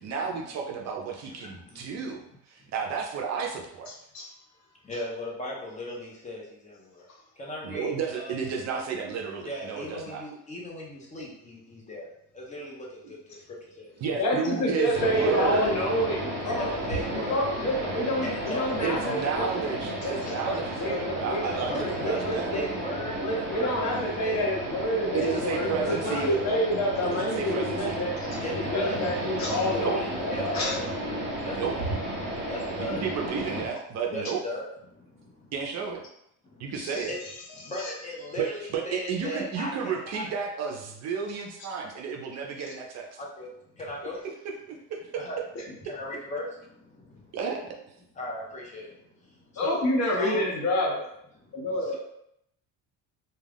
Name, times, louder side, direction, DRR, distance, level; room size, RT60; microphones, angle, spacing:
voice 1, 0.0-3.9 7.6-10.2 13.0-13.1 14.0-15.8 18.8-22.5 25.1-26.5 27.0-28.1 29.7-30.0 31.5-31.8 32.8-34.4 35.5-36.0 36.6-37.1 38.4-43.2 44.4-45.3 47.3-47.7, right 6 dB, 50° right, 1 dB, 0.5 m, -32 dB
voice 2, 1.2-1.8 4.8-7.1 7.4-8.3 9.5-12.1 12.3-13.4 13.8-13.9 16.4-17.5 18.2-19.4 20.4-21.0 21.4-24.5 25.2-26.5 28.4-29.0 29.7-30.8 31.4-31.9 32.5-33.0 34.1-34.6 35.3-35.4 36.6-36.7 37.1-37.2 37.6-40.3 43.2-43.5 43.8-44.2 45.1-45.4 45.9-46.5 47.1-47.2 48.2-48.9 49.5-49.9 50.2-50.4 51.8-51.9, left 1 dB, 20° left, -3 dB, 0.7 m, -37 dB
voice 3, 14.2-16.7 17.1-19.6 20.0-20.4 20.8-22.7 23.2-28.1 28.4-30.8 36.8-37.1 37.8-37.9 45.6-45.7 49.6-51.0 51.5-51.9, equal, 55° left, -1 dB, 0.8 m, -28 dB
sound 1, 14.9-33.6, right 1 dB, 30° right, 0.9 m, -33 dB
2.3 x 2.2 x 3.4 m, 0.75 s
cardioid pair, 130°, 34 cm